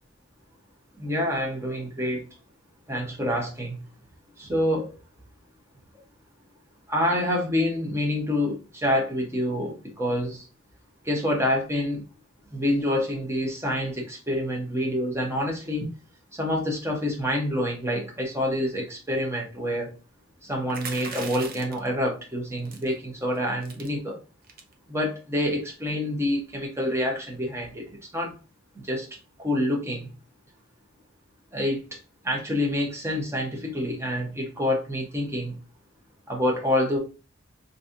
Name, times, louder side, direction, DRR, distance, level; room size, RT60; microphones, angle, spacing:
voice 1, 1.0-2.3 2.9-3.8 4.4-5.0 6.9-10.4 11.0-12.0 12.5-15.9 16.3-19.9 20.4-24.2 24.9-28.3 28.8-29.1 29.4-30.1 31.5-31.8 32.2-35.5 36.3-37.0, left 1 dB, 15° right, -1 dB, 0.9 m, -27 dB
sound 1, 20.7-21.9 22.7-22.9 23.3-23.4 23.6-23.9 24.4-24.7, right 5 dB, 45° right, 0.6 m, -38 dB
3.0 x 2.7 x 3.7 m, 0.33 s
head